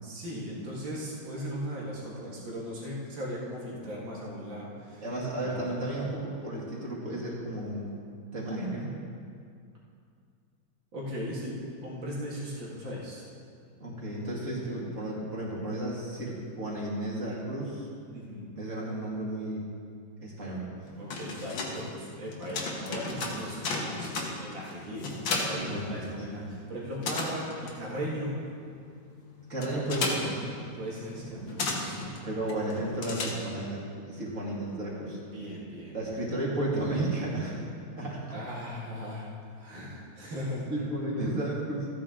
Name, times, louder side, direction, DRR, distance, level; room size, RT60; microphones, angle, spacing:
voice 1, 0.0-5.1 5.4-5.8 10.9-13.2 18.1-18.6 21.0-28.3 30.8-32.2 35.2-36.0 38.3-40.7, equal, 80° right, -5 dB, 2.7 m, -38 dB
voice 2, 5.0-7.9 8.3-8.9 13.8-17.9 18.5-19.7 20.2-20.7 23.3-23.5 25.6-26.1 26.4-26.6 29.5-30.7 31.2-31.4 31.8-35.2 35.9-37.7 38.0-38.2 40.2-40.3 40.7-41.9, right 1 dB, 40° right, -5 dB, 2.4 m, -33 dB
sound 1, 20.9-26.5 26.7-33.8, left 3 dB, 85° left, 2.0 m, -35 dB
14.5 x 9.1 x 3.8 m, 2.3 s
omnidirectional pair, 2.0 m